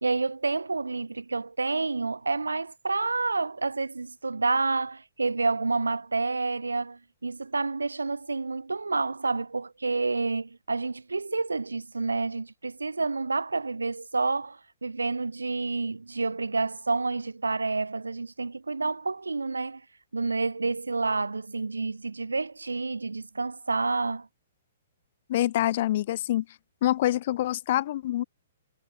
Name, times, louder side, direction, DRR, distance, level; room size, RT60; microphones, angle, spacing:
voice 1, 0.0-19.8 20.1-24.3, right 3 dB, 75° right, 1.7 m, -29 dB
voice 2, 25.3-26.4 26.8-28.2, left 14 dB, 45° left, 0.7 m, -26 dB
figure-of-eight pair, 115°, 0 cm